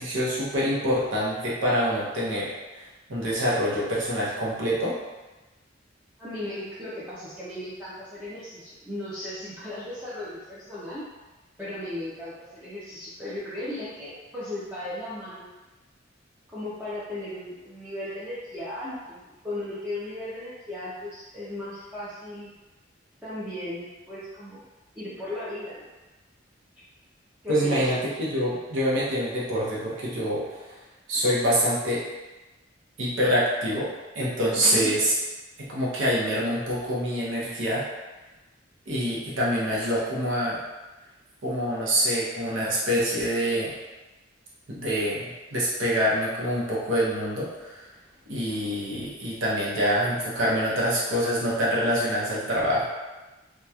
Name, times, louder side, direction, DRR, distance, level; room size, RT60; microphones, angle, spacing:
voice 1, 0.0-5.0 27.5-30.8 31.1-32.1 33.0-35.1 35.6-37.9 38.9-40.6 41.4-43.7 44.7-47.9 48.3-52.8, equal, 80° right, -6 dB, 0.8 m, -26 dB
voice 2, 6.2-11.0 11.6-15.5 16.5-22.5 23.2-24.6 24.9-25.9 27.4-28.1 34.5-34.9, left 1 dB, 10° right, -12 dB, 0.5 m, -36 dB
2.9 x 2.2 x 2.3 m, 1.1 s
head